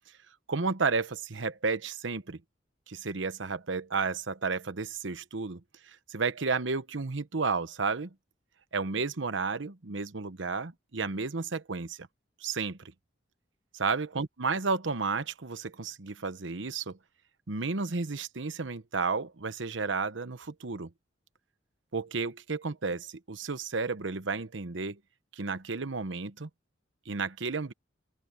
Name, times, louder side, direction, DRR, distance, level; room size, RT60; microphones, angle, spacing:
voice 1, 0.5-2.4 2.9-5.6 6.1-8.1 8.7-12.1 12.4-12.8 13.7-17.0 17.5-20.9 21.9-25.0 25.4-26.5 27.1-27.7, right 4 dB, 85° right, 1.0 m, -32 dB
open air
head